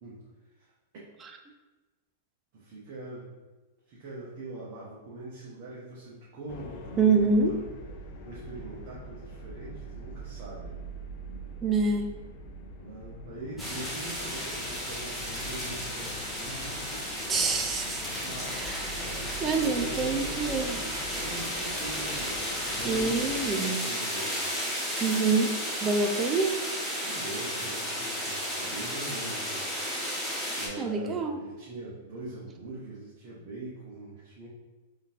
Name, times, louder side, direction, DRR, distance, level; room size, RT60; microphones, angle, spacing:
voice 1, 0.6-1.0 2.5-3.4 3.9-7.6 8.2-10.8 12.8-17.0 18.2-22.4 22.8-24.5 27.0-29.6 30.0-34.5, right 2 dB, 50° right, -7 dB, 1.1 m, -42 dB
sound 1, 6.5-23.6, right 1 dB, 50° left, 0.5 m, -43 dB
voice 2, 7.0-7.5 11.6-12.1 17.3-18.0 18.5-19.0 19.4-20.8 22.8-23.8 25.0-25.5 25.8-26.5 30.8-31.4, right 4 dB, 20° right, 4 dB, 0.4 m, -26 dB
sound 2, 13.6-30.7, equal, 5° right, 1.3 m, -33 dB
3.6 x 2.8 x 3.6 m, 1.2 s
hypercardioid pair, 105°, 0 cm